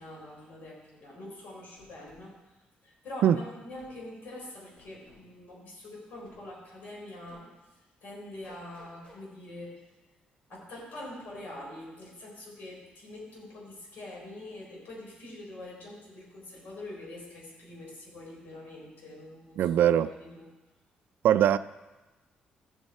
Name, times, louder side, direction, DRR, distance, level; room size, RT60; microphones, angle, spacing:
voice 1, 0.0-2.3 2.8-7.5 8.0-9.8 10.5-20.5, left 1 dB, 65° left, 4.3 m, -44 dB
sound 1, 1.8-2.2 3.8-4.0 4.8-5.3 6.2-6.4 7.3-7.5 8.4-9.2, equal, 35° left, 4.4 m, -56 dB
voice 2, 19.6-20.1 21.2-21.6, right 10 dB, 75° right, 0.3 m, -21 dB
14.0 x 8.0 x 4.2 m
cardioid pair, 135°, 3 cm